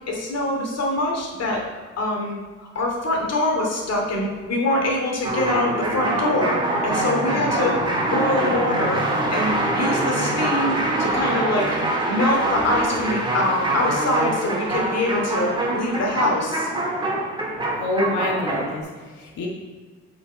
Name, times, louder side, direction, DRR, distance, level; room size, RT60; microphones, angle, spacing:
voice 1, 0.1-1.6 2.0-2.4 2.7-7.8 8.1-9.0 9.3-11.7 12.1-16.7 18.3-18.4, left 1 dB, 55° left, 0 dB, 2.6 m, -24 dB
sound 1, 5.2-18.8, right 2 dB, 15° right, 2.8 m, -24 dB
voice 2, 17.7-19.5, left 1 dB, 75° left, -1 dB, 1.6 m, -27 dB
7.9 x 5.8 x 5.0 m, 1.4 s
cardioid pair, 90°, 30 cm